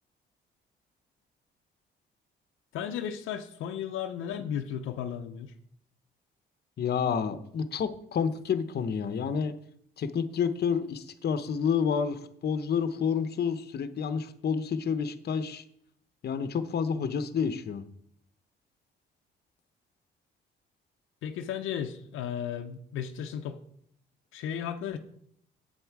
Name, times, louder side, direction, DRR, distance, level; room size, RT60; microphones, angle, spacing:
voice 1, 2.7-5.5 21.2-23.6 24.3-25.0, left 9 dB, 90° left, 7 dB, 0.6 m, -34 dB
voice 2, 6.8-9.5 10.0-15.6 16.2-17.8, left 6 dB, 55° left, 11 dB, 0.8 m, -29 dB
8.0 x 7.9 x 4.7 m, 0.68 s
cardioid pair, 90°, 20 cm